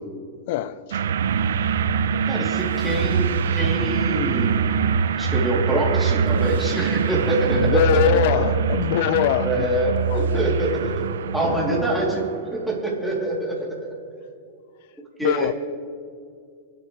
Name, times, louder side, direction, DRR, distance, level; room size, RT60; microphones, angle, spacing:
voice 1, 0.5-1.0 7.5-9.7 10.1-10.3 15.2-15.5, left 13 dB, 60° left, 0.5 m, -23 dB
sound 1, 0.9-12.3, right 6 dB, 80° right, 0.7 m, -23 dB
voice 2, 2.2-4.6 5.2-8.5 9.4-11.1 11.3-13.9 15.2-15.5, right 1 dB, ahead, 3.3 m, -25 dB
26.0 x 9.0 x 3.4 m
hypercardioid pair, 125°, 0 cm